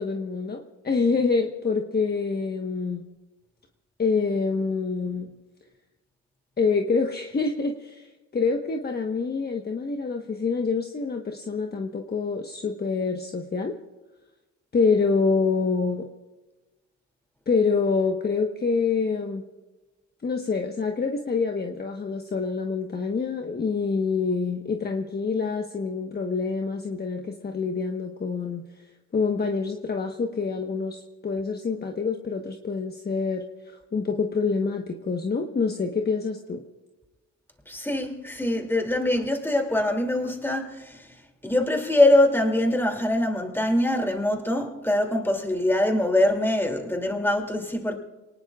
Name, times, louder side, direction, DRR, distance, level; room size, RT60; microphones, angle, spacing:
voice 1, 0.0-3.0 4.0-5.3 6.6-8.1 8.3-13.8 14.7-16.1 17.5-19.5 20.2-28.6 29.1-36.6, left 4 dB, 30° left, 1.2 m, -26 dB
voice 2, 37.7-41.1 41.4-48.0, left 1 dB, 5° left, 2.7 m, -23 dB
27.5 x 19.0 x 2.4 m
cardioid pair, 90°, 30 cm